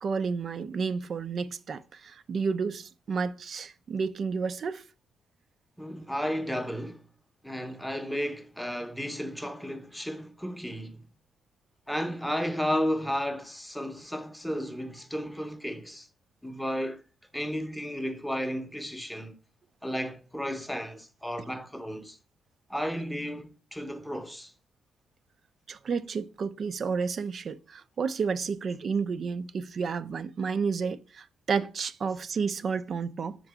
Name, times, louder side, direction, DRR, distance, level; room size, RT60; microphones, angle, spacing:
voice 1, 0.0-4.8 25.7-33.4, right 5 dB, 50° right, 0.4 m, -31 dB
voice 2, 5.8-7.0 7.4-11.1 11.9-16.1 16.4-17.0 17.3-19.4 19.8-22.2 22.7-24.5, equal, ahead, 0.7 m, -33 dB
6.3 x 3.8 x 4.7 m
cardioid pair, 90°, 0 cm